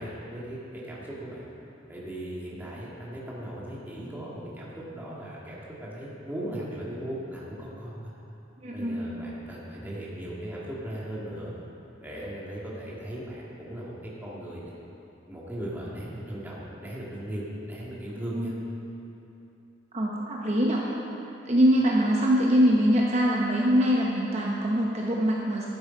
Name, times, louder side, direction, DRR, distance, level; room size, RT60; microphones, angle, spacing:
voice 1, 0.0-1.4 1.9-8.1 8.7-11.5 12.0-14.7 15.3-18.5, right 1 dB, 10° right, -6 dB, 1.9 m, -37 dB
voice 2, 8.6-9.0 18.2-18.6 19.9-20.8 21.4-25.7, equal, 35° right, -3 dB, 0.9 m, -23 dB
12.5 x 7.9 x 5.2 m, 2.9 s
head